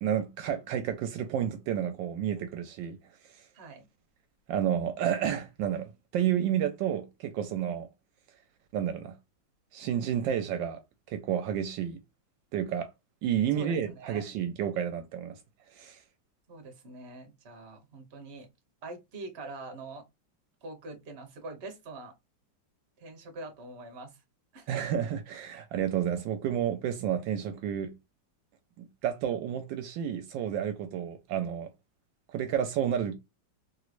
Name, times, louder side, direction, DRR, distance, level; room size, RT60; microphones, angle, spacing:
voice 1, 0.0-3.0 4.5-7.9 8.7-9.1 9.7-10.8 11.1-12.0 12.5-12.9 13.2-15.4 15.7-16.0 24.7-27.9 28.8-31.7 32.3-33.2, right 9 dB, 75° right, 1.2 m, -30 dB
voice 2, 3.5-3.9 13.5-14.2 16.5-18.5 18.8-20.0 20.6-22.1 23.0-24.2 24.5-24.9, right 2 dB, 40° right, 1.0 m, -44 dB
3.2 x 3.0 x 2.4 m
omnidirectional pair, 2.1 m